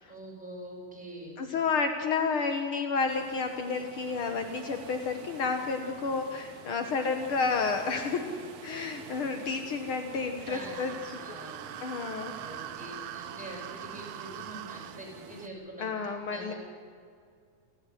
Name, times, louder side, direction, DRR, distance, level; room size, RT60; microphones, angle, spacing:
voice 1, 0.1-1.4 10.4-10.9 11.2-11.8 12.3-16.5, right 1 dB, ahead, -3 dB, 7.1 m, -44 dB
voice 2, 1.4-8.4 8.6-11.4 11.8-12.6 15.8-16.5, left 4 dB, 75° left, 5 dB, 1.2 m, -31 dB
sound 1, 3.1-15.5, right 7 dB, 60° right, 2.1 m, -48 dB
sound 2, 10.4-15.0, right 12 dB, 85° right, 2.7 m, -43 dB
29.0 x 12.0 x 10.0 m, 2.2 s
omnidirectional pair, 4.4 m